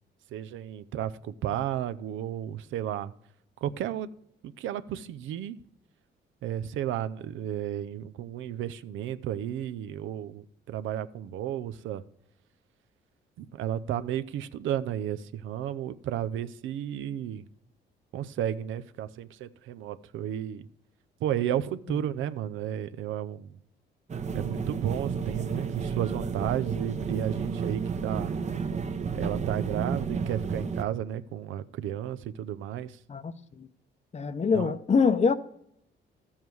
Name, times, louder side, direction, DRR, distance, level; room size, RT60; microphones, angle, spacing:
voice 1, 0.3-3.1 3.6-4.1 4.6-5.6 6.4-12.0 13.4-17.4 18.1-20.6 21.2-23.6 24.3-28.3 29.1-33.0 34.5-34.8, right 10 dB, 80° right, 0.6 m, -33 dB
sound 1, 24.1-30.8, right 5 dB, 35° right, 0.8 m, -32 dB
voice 2, 33.1-33.7 34.1-35.3, left 5 dB, 35° left, 0.7 m, -25 dB
12.5 x 7.3 x 4.7 m
cardioid pair, 90°, 20 cm